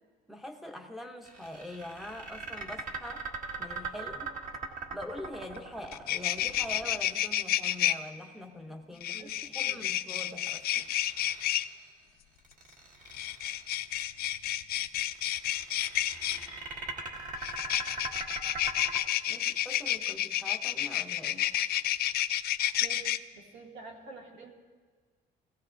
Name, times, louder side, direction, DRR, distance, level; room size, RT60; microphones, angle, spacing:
voice 1, 0.3-4.3 4.9-10.9 19.3-21.5, left 1 dB, ahead, 3 dB, 0.7 m, -44 dB
sound 1, 1.2-7.4 10.3-11.8 12.4-13.7 15.0-19.0, right 3 dB, 45° right, 1.6 m, -41 dB
sound 2, 5.5-5.6 5.9-7.9 9.0-11.6 13.1-16.5 17.4-23.2, left 12 dB, 60° left, 0.4 m, -30 dB
voice 2, 22.8-24.5, right 3 dB, 70° right, 0 dB, 2.2 m, -48 dB
18.5 x 16.0 x 2.5 m, 1.5 s
cardioid pair, 155°, 18 cm